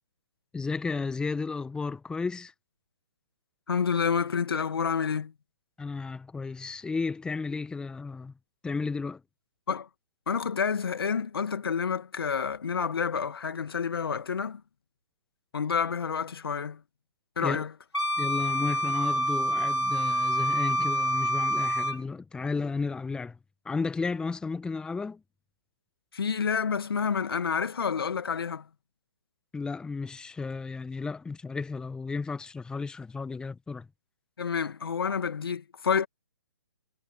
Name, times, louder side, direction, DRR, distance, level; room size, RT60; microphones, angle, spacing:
voice 1, 0.5-2.5 5.8-8.3 8.6-9.2 17.4-17.6 18.2-23.4 23.6-25.2 29.5-33.9, left 4 dB, 5° left, 1.5 m, -33 dB
voice 2, 3.7-5.3 9.7-9.9 10.3-14.6 15.5-16.8 17.4-17.7 26.1-28.7 34.4-36.1, left 6 dB, 65° left, 2.1 m, -29 dB
Wind instrument woodwind instrument, 17.9-22.0, equal, 85° left, 3.2 m, -27 dB
figure-of-eight pair, 135°, 13 cm